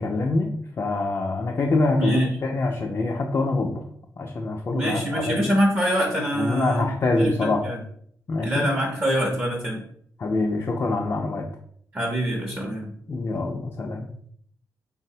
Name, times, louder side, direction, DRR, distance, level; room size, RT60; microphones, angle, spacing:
voice 1, 0.0-3.8 4.2-5.4 6.4-7.6 8.3-8.7 10.2-11.5 13.1-14.1, left 3 dB, 40° left, 0 dB, 0.4 m, -25 dB
voice 2, 2.0-2.3 4.7-7.8 8.4-9.8 11.9-12.9, equal, 25° right, -1 dB, 0.6 m, -25 dB
3.5 x 2.0 x 2.7 m, 0.63 s
cardioid pair, 85°, 7 cm